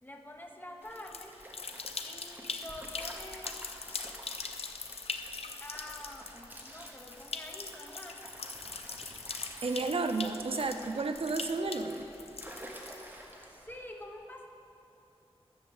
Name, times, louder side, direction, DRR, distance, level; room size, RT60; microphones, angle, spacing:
voice 1, 0.0-1.3 2.0-3.6 5.6-8.3 13.5-14.5, left 1 dB, 20° left, 2 dB, 1.1 m, -47 dB
sound 1, 0.8-13.3, left 4 dB, 70° left, 0.6 m, -42 dB
Stream, 0.8-13.9, right 1 dB, 20° right, 1.2 m, -50 dB
voice 2, 9.6-12.1, right 3 dB, 65° right, 7 dB, 0.6 m, -32 dB
11.5 x 6.8 x 7.1 m, 2.9 s
wide cardioid pair, 95°, 11 cm